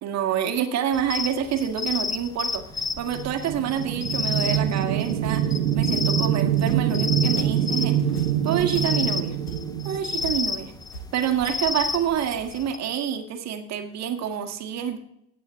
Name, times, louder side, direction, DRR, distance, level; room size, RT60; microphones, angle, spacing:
voice 1, 0.0-8.0 8.4-9.4 9.8-10.7 11.1-15.0, right 9 dB, 35° right, 7 dB, 1.8 m, -27 dB
sound 1, 0.9-12.8, left 4 dB, 10° left, 0.5 m, -31 dB
sound 2, 3.0-10.7, right 10 dB, 65° right, 1.4 m, -25 dB
sound 3, 4.5-4.9 5.2-5.6 5.9-9.9 10.2-11.1, right 2 dB, 75° left, 4.0 m, -43 dB
17.0 x 8.6 x 3.7 m, 0.77 s
hypercardioid pair, 85°, 45 cm